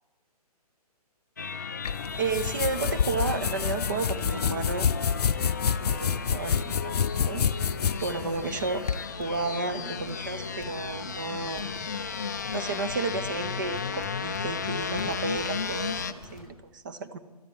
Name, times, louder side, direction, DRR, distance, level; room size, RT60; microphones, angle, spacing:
sound 1, 1.4-16.1, left 5 dB, 30° left, 0.4 m, -35 dB
sound 2, 1.8-9.0, left 7 dB, 80° left, 0.5 m, -28 dB
Crackle, 2.1-16.4, left 1 dB, 5° right, 1.5 m, -49 dB
voice 1, 2.2-4.9 5.7-7.7 8.0-8.8 9.2-11.6 12.5-17.2, right 4 dB, 30° right, 10 dB, 0.7 m, -32 dB
12.5 x 8.7 x 7.9 m, 1.3 s
hypercardioid pair, 170°, 20 cm